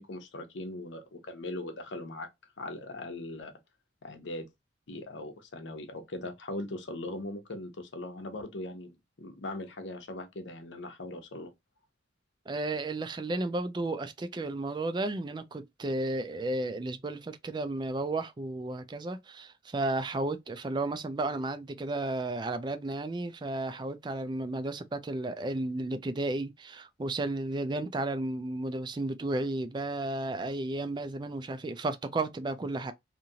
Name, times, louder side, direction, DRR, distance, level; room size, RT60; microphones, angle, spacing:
voice 1, 0.0-2.3 2.6-3.5 4.0-4.5 4.9-11.5, left 2 dB, 85° left, 0.8 m, -40 dB
voice 2, 12.5-32.9, right 2 dB, 25° right, 0.3 m, -33 dB
2.8 x 2.5 x 2.7 m
head